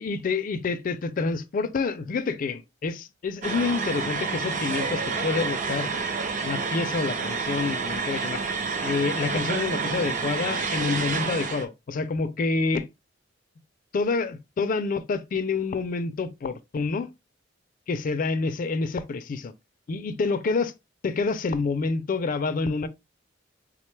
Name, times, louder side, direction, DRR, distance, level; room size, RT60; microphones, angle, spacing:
voice 1, 0.0-5.9 6.4-8.4 8.8-12.9 13.9-17.1 17.9-19.5 19.9-20.7 21.0-22.9, left 4 dB, 45° left, 0.4 m, -28 dB
sound 1, 3.4-11.6, right 4 dB, 40° right, 0.5 m, -29 dB
3.5 x 2.2 x 3.1 m
head